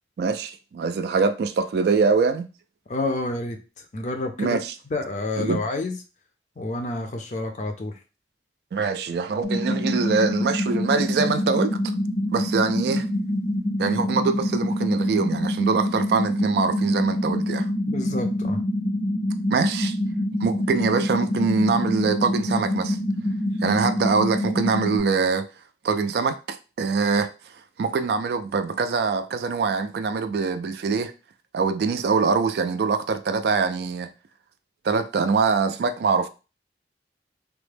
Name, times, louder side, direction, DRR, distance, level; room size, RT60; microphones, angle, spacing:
voice 1, 0.2-2.5 4.4-4.7 5.4-5.6 8.7-11.8 12.3-13.1 13.8-17.7 19.5-20.0 20.4-23.0 23.6-25.5 25.8-27.3 27.8-31.1 31.5-34.1 34.8-36.3, right 4 dB, 65° right, 0.3 m, -23 dB
voice 2, 2.9-3.6 3.9-4.6 4.9-6.0 6.6-8.0 17.8-18.6, left 2 dB, 40° left, 0.5 m, -29 dB
sound 1, 9.4-25.0, left 1 dB, 80° left, 0.7 m, -26 dB
3.3 x 2.1 x 3.3 m
head